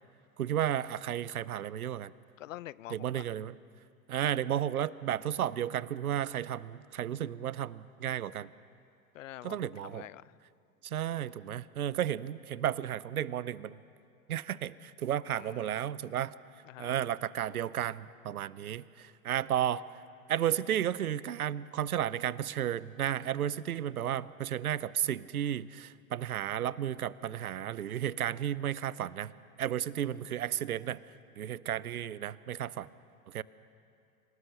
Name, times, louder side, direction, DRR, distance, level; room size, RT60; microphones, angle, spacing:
voice 1, 0.4-2.1 2.9-3.6 4.1-8.5 9.4-10.1 10.8-13.8 14.3-16.3 16.8-19.8 20.3-29.3 29.6-31.0 31.4-32.9 33.3-33.4, right 10 dB, 75° right, 20 dB, 0.7 m, -33 dB
voice 2, 2.4-3.4 9.1-10.2 15.3-15.7 16.7-17.0, left 14 dB, 60° left, 22 dB, 0.5 m, -46 dB
26.5 x 18.0 x 6.7 m, 2.5 s
figure-of-eight pair, 100°, 44 cm